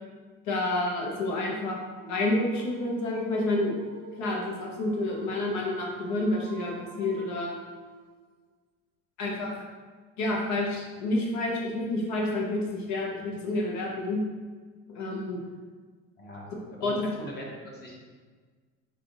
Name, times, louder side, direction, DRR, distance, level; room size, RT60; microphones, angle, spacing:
voice 1, 0.5-1.8 2.1-3.7 4.2-7.5 9.2-9.6 10.2-14.2 14.9-15.4 16.8-16.9, left 2 dB, 60° left, -1 dB, 0.9 m, -29 dB
Dog, 1.9-8.3, equal, 50° right, 0.6 m, -45 dB
voice 2, 16.2-16.5 16.8-18.0, equal, 30° left, -3 dB, 1.0 m, -40 dB
3.5 x 3.5 x 3.9 m, 1.5 s
cardioid pair, 145°, 33 cm